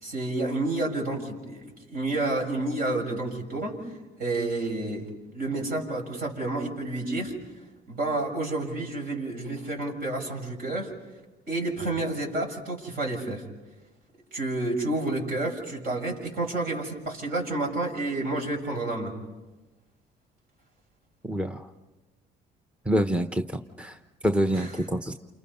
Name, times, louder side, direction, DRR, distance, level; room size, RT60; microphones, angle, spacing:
voice 1, 0.0-3.8 4.2-5.0 5.3-7.3 7.9-10.9 11.5-13.4 14.3-19.1 24.5-24.7, right 2 dB, 60° right, 1 dB, 6.5 m, -30 dB
voice 2, 21.2-21.7 22.9-24.0 24.2-25.1, equal, 5° right, 7 dB, 0.9 m, -26 dB
29.5 x 28.0 x 5.6 m, 1.2 s
cardioid pair, 110°, 17 cm